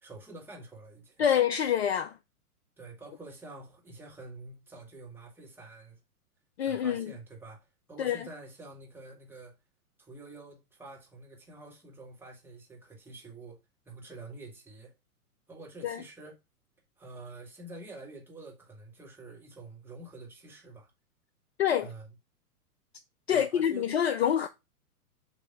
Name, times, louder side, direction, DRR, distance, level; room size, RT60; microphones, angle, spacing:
voice 1, 0.0-1.3 2.8-6.0 6.6-9.6 10.0-13.6 13.8-15.0 15.5-16.4 17.0-20.9 21.8-22.1 23.3-23.9, right 3 dB, 5° right, 1.9 m, -47 dB
voice 2, 1.2-2.2 6.6-7.1 8.0-8.2 15.8-16.0 21.6-21.9 23.3-24.5, left 9 dB, 45° left, 0.5 m, -26 dB
7.4 x 2.9 x 5.8 m
figure-of-eight pair, 105°, 45 cm